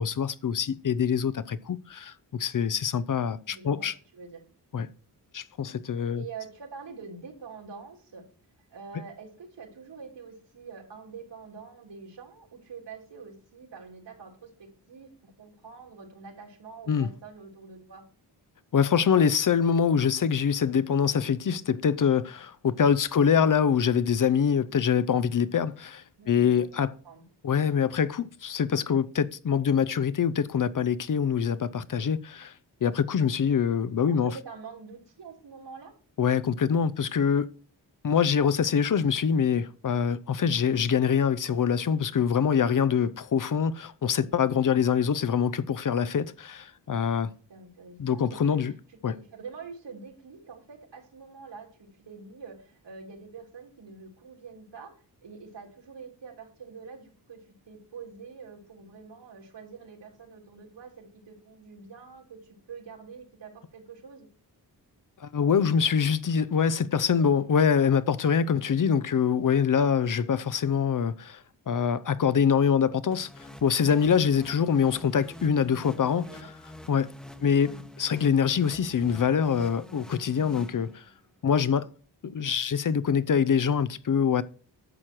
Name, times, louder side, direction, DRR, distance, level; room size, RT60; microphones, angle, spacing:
voice 1, 0.0-3.9 4.7-4.9 5.3-6.2 16.9-17.1 18.7-26.9 27.4-32.5 32.8-34.3 36.2-37.5 38.0-47.3 48.0-48.7 49.0-49.2 65.2-71.4 71.7-73.3 73.6-76.3 76.9-77.1 77.4-81.0 81.4-81.9 82.2-84.4, left 7 dB, 50° left, 0.6 m, -24 dB
voice 2, 3.4-4.4 6.1-8.3 8.7-18.0 23.1-23.6 26.2-26.7 27.0-27.2 34.0-35.9 47.5-54.9 55.2-64.3 75.8-76.5 77.4-77.8, right 5 dB, 80° right, 3.5 m, -46 dB
sound 1, 73.1-81.3, left 1 dB, ahead, 0.9 m, -46 dB
11.0 x 7.5 x 4.6 m
wide cardioid pair, 155°, 42 cm